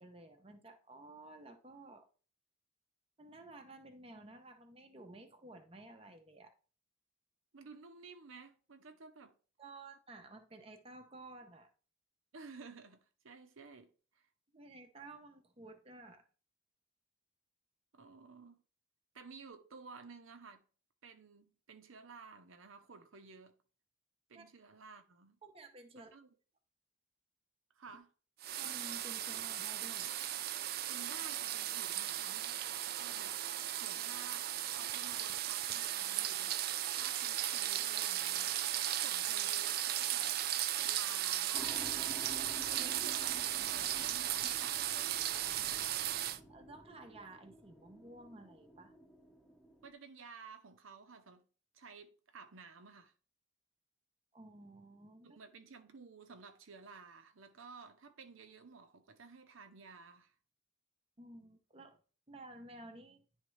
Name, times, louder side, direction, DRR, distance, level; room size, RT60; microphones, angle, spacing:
voice 1, 0.0-2.1 3.2-6.5 9.6-11.7 14.5-16.2 24.3-24.4 25.4-26.1 28.6-30.1 42.7-42.9 46.5-48.9 54.3-55.4 61.2-62.0 62.3-63.2, right 2 dB, 30° right, 0.8 m, -53 dB
voice 2, 7.5-9.3 12.3-14.3 17.9-18.6 19.1-20.6 21.0-23.6 24.3-25.4 25.9-26.3 27.8-28.1 30.9-32.6 33.0-33.4 33.8-36.6 36.9-40.4 40.8-42.1 42.7-46.0 49.8-51.5 51.7-53.1 55.2-60.3, right 4 dB, 90° right, 0.8 m, -54 dB
sound 1, 28.4-46.4, right 12 dB, 50° right, 0.3 m, -36 dB
sound 2, 41.5-49.9, right 1 dB, ahead, 0.9 m, -53 dB
10.5 x 3.6 x 3.2 m
head